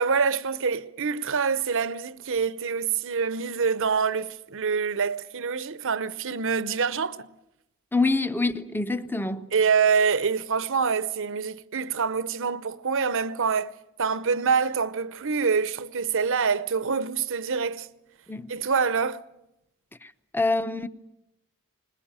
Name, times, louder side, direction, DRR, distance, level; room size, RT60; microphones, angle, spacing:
voice 1, 0.0-7.3 9.5-13.7 14.0-17.9 18.5-19.2, right 5 dB, 60° right, 0.8 m, -26 dB
voice 2, 7.9-9.5 18.3-18.5 20.0-20.9, left 3 dB, 10° left, 0.8 m, -26 dB
21.5 x 21.0 x 8.9 m
head